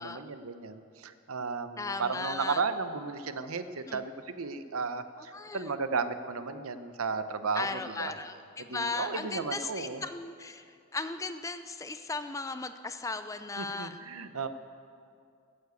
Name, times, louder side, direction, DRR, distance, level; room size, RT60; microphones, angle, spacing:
voice 1, 0.0-8.1 8.7-10.0 13.6-14.5, right 4 dB, 70° right, 11 dB, 0.8 m, -34 dB
voice 2, 1.8-2.6 3.9-4.0 5.3-5.7 7.5-14.0, left 3 dB, 15° left, 10 dB, 0.4 m, -37 dB
15.0 x 9.9 x 8.1 m, 2.4 s
head